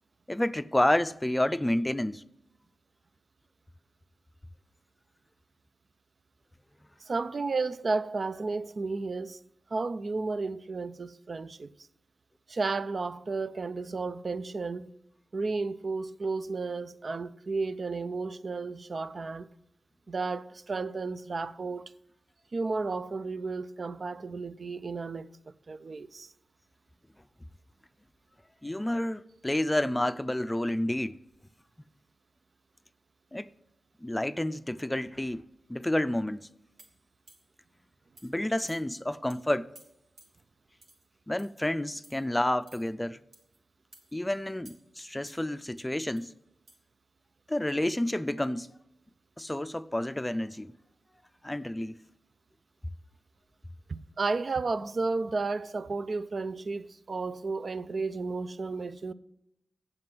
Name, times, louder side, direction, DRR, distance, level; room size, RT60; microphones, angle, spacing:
voice 1, 0.3-2.2 28.6-31.2 33.3-33.5 34.0-35.4 35.7-36.5 38.2-39.7 41.3-43.2 44.1-46.3 47.5-48.7 49.4-50.7 51.4-52.0, left 1 dB, 15° left, 0.4 m, -29 dB
voice 2, 7.0-9.4 9.7-11.7 12.5-14.9 15.3-19.5 20.1-21.9 22.5-26.3 53.9-59.1, right 3 dB, 60° right, 0.4 m, -33 dB
sound 1, 36.8-37.6 38.2-38.4 38.7-39.0 39.3-39.4 39.8-40.4 40.8-41.1 41.4-41.6 42.0-42.3 42.7-42.9 43.3-43.6 43.9-44.1 44.7-45.0 45.3-46.3 46.7-46.8, right 2 dB, 75° right, 1.6 m, -57 dB
7.7 x 7.6 x 6.0 m
cardioid pair, 40°, 0 cm